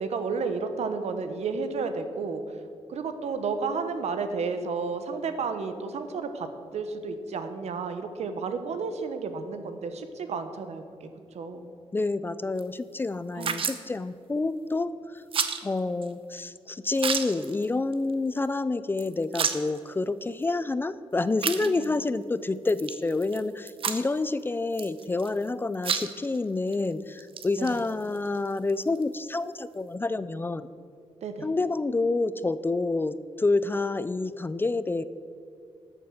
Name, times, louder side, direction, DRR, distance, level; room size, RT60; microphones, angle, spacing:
voice 1, 0.0-2.4 2.9-6.5 6.7-11.1 11.3-11.7 13.3-13.7 21.6-21.9 27.6-27.8 31.2-31.5, right 4 dB, 85° right, 8 dB, 1.1 m, -32 dB
voice 2, 11.9-15.2 15.6-30.6 31.4-35.0, left 3 dB, 20° left, 15 dB, 0.3 m, -28 dB
sound 1, 12.6-12.7 13.4-13.8 15.3-15.6 16.0-16.1 16.4-16.5 16.9-17.7 17.9-18.1 18.4-18.5 19.0-19.8 20.4-20.5 21.4-22.0 22.7-23.4 23.7-24.2 24.7-25.5 25.7-26.4 26.7-26.8 27.2-29.1, right 6 dB, 55° right, 0.8 m, -31 dB
13.0 x 7.2 x 6.4 m, 2.4 s
wide cardioid pair, 145°, 11 cm